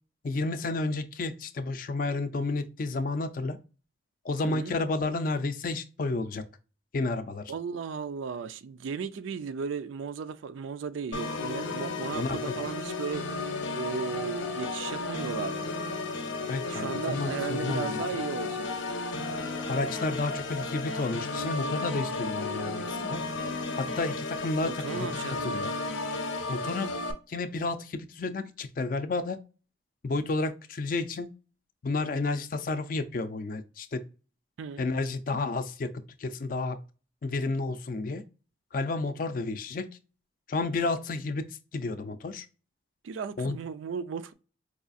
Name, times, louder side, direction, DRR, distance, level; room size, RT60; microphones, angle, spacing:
voice 1, 0.2-3.6 4.2-6.5 6.9-7.5 12.1-12.6 16.5-18.0 19.7-23.2 23.8-25.1 25.4-25.7 26.5-26.9 27.3-29.4 30.0-31.3 31.8-34.0 34.8-36.8 37.2-38.2 38.7-39.9 40.5-42.5 43.4-43.6, left 3 dB, 45° left, 0.4 m, -31 dB
voice 2, 4.4-4.8 7.5-15.7 16.7-18.7 24.6-25.6 34.6-34.9 43.0-44.3, right 6 dB, 90° right, 0.4 m, -36 dB
Organ, 11.1-27.1, left 3 dB, 85° left, 0.6 m, -33 dB
4.7 x 2.4 x 2.5 m
head